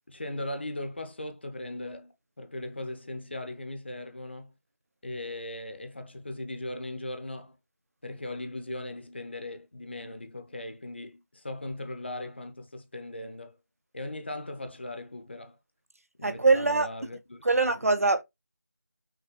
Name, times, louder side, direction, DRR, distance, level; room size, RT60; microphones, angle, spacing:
voice 1, 0.1-4.5 5.0-7.6 8.0-13.6 13.9-15.6 16.2-17.7, left 1 dB, 40° left, 0.6 m, -38 dB
voice 2, 16.2-16.9 17.4-18.2, right 3 dB, 55° right, 0.6 m, -23 dB
5.7 x 2.4 x 3.0 m
figure-of-eight pair, 165°, 9 cm